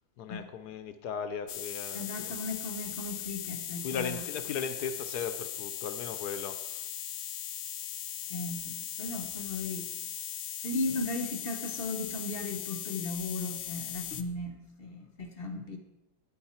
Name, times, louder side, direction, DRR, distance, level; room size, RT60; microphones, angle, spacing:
voice 1, 0.2-2.3 3.8-6.9, left 6 dB, 70° left, 9 dB, 1.1 m, -37 dB
sound 1, 1.5-14.2, left 11 dB, 85° left, 0.7 m, -39 dB
voice 2, 1.9-4.2 8.3-9.9 10.6-15.8, left 2 dB, 50° left, 4 dB, 0.7 m, -36 dB
9.4 x 8.7 x 4.3 m, 0.95 s
omnidirectional pair, 2.1 m